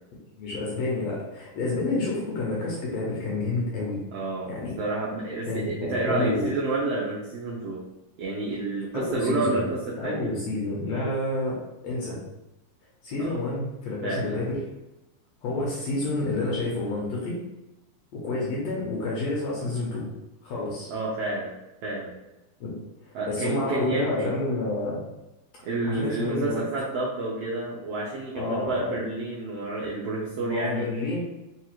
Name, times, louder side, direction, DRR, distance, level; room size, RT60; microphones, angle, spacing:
voice 1, 0.4-4.0 4.5-4.8 5.5-6.5 8.9-9.6 10.0-12.2 13.0-14.6 15.4-17.4 18.1-20.1 20.4-20.9 22.6-22.7 23.0-25.0 25.9-26.6 28.3-29.0 30.4-31.2, left 2 dB, 70° left, -4 dB, 1.7 m, -29 dB
voice 2, 4.1-4.5 4.8-7.8 8.2-10.3 13.2-13.4 14.0-14.4 20.9-21.5 21.8-22.2 23.1-24.4 25.6-30.9, right 2 dB, 75° right, -5 dB, 1.5 m, -29 dB
4.8 x 2.5 x 2.9 m, 0.95 s
omnidirectional pair, 3.5 m